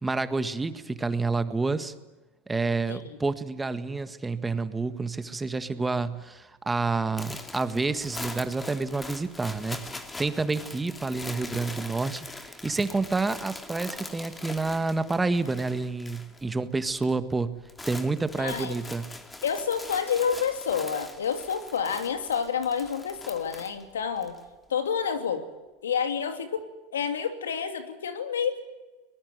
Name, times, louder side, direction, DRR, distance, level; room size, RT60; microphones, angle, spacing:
voice 1, 0.0-1.9 2.5-9.8 10.2-17.5 17.8-19.1, right 3 dB, 15° right, 11 dB, 1.6 m, -29 dB
voice 2, 2.9-3.3 18.4-18.7 19.4-24.3 24.7-25.4 25.8-26.6 26.9-28.6, left 7 dB, 85° left, 8 dB, 2.8 m, -29 dB
sound 1, 7.2-16.5 16.7-17.1 17.4-24.4, left 2 dB, 15° left, 2.8 m, -42 dB
23.0 x 20.5 x 9.4 m, 1.1 s
hypercardioid pair, 95°, 0 cm